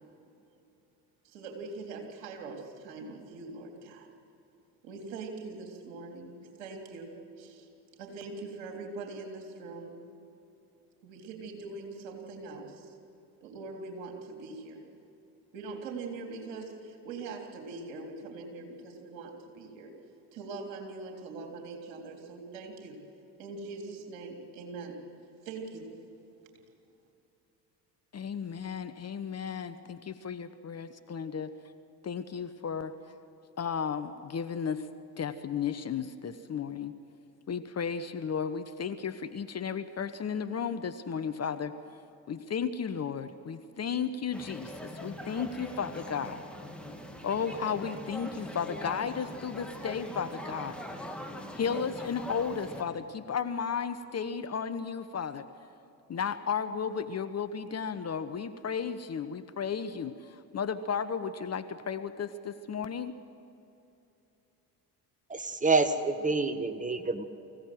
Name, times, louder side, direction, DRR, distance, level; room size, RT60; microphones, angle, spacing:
voice 1, 1.2-4.1 4.8-7.7 8.0-10.0 11.0-13.0 13.4-14.8 15.5-19.9 20.3-23.0 23.4-25.0 25.4-25.9, right 3 dB, 70° right, 2 dB, 3.6 m, -42 dB
voice 2, 28.1-31.5 32.0-32.9 33.6-34.9 35.2-37.0 37.5-41.7 42.3-46.4 47.2-50.8 51.5-55.5 56.1-63.2, left 6 dB, 30° left, 10 dB, 1.0 m, -34 dB
sound 1, 44.3-52.8, left 1 dB, ahead, 2.8 m, -42 dB
voice 3, 65.3-67.2, right 3 dB, 15° right, 10 dB, 1.6 m, -27 dB
24.0 x 16.0 x 7.8 m, 2.8 s
hypercardioid pair, 60°, 48 cm